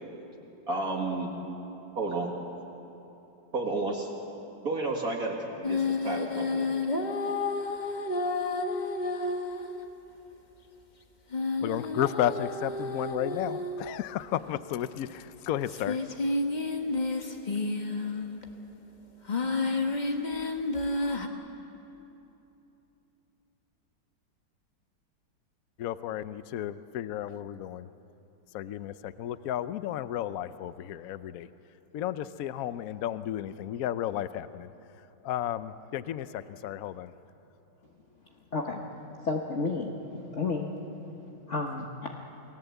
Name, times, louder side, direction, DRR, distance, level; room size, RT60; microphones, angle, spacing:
voice 1, 0.7-1.3 2.0-2.3 3.5-4.1 4.6-6.7, right 2 dB, 50° right, -1 dB, 2.5 m, -31 dB
sound 1, 5.6-9.8 11.3-14.0 14.8-14.9 15.7-18.4 19.3-21.3, left 3 dB, 25° left, 1.3 m, -30 dB
voice 2, 11.6-16.0 25.8-27.9 28.5-31.5 31.9-34.7 35.2-37.1, left 11 dB, 60° left, 13 dB, 1.0 m, -33 dB
voice 3, 38.5-38.8 39.2-39.9 40.3-40.7 41.5-42.1, left 3 dB, 45° left, 0 dB, 1.5 m, -31 dB
29.0 x 19.0 x 8.2 m, 3.0 s
omnidirectional pair, 2.0 m